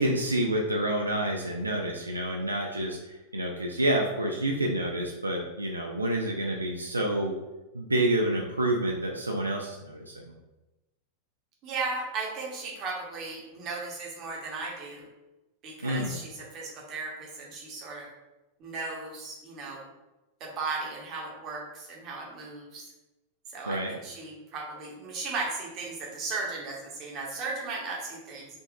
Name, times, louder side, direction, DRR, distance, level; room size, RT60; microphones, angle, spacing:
voice 1, 0.0-7.4 7.7-10.3 15.8-16.2 23.7-23.9, right 1 dB, 80° right, 0 dB, 0.3 m, -28 dB
voice 2, 11.6-15.1 15.6-18.1 18.6-19.8 20.4-22.9 23.5-28.5, right 3 dB, 35° right, -2 dB, 0.9 m, -36 dB
3.7 x 2.4 x 2.3 m, 1.0 s
figure-of-eight pair, 90°, 0 cm